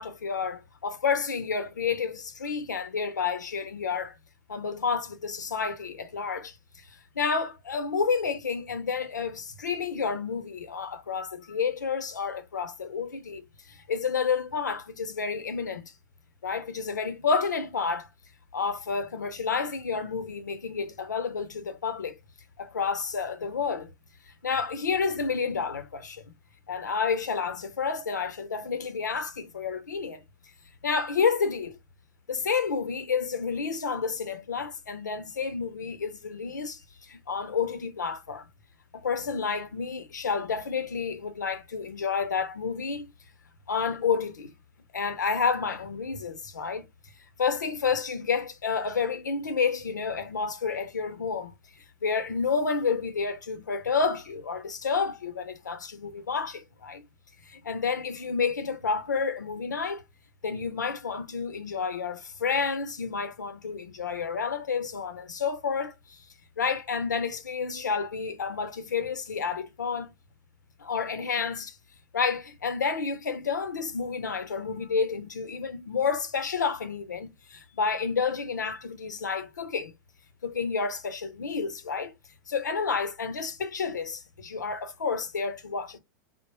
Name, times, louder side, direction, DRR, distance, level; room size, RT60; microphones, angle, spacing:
voice 1, 0.0-4.2 4.5-15.9 16.4-18.1 18.5-22.2 22.6-23.9 24.4-26.2 26.7-30.2 30.8-31.8 32.3-38.5 38.9-43.1 43.7-44.5 44.9-46.9 47.4-51.5 52.0-57.0 57.4-60.0 60.4-66.3 66.6-70.1 70.8-71.8 72.1-79.9 80.4-82.1 82.5-86.0, left 5 dB, 80° left, 0.6 m, -30 dB
3.3 x 2.0 x 2.9 m
figure-of-eight pair, 95°, 10 cm